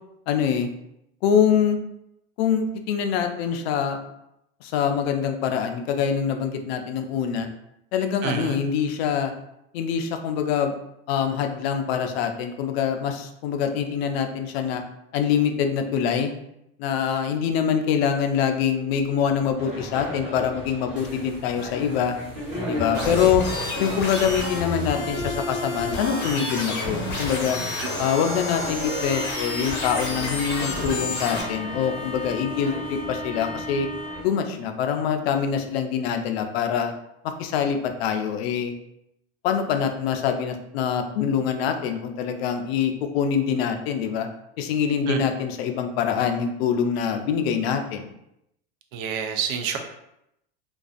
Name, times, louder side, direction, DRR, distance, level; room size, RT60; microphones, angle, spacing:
voice 1, 0.3-0.7 1.2-1.8 2.4-4.0 4.6-7.5 7.9-9.3 9.7-10.7 11.1-14.8 15.1-16.3 16.8-22.2 22.7-23.5 23.8-27.6 28.0-33.9 34.2-36.9 37.4-38.7 39.4-44.3 44.6-48.1, left 7 dB, 75° left, 6 dB, 0.5 m, -24 dB
voice 2, 8.2-8.6 22.9-23.3 27.8-27.9 45.1-45.2 48.9-49.8, right 7 dB, 55° right, 5 dB, 0.5 m, -28 dB
sound 1, 19.6-34.3, left 1 dB, 5° right, 1.1 m, -35 dB
sound 2, 22.9-31.4, left 2 dB, 35° left, 0.7 m, -30 dB
2.4 x 2.3 x 2.4 m, 0.81 s
supercardioid pair, 125°, 31 cm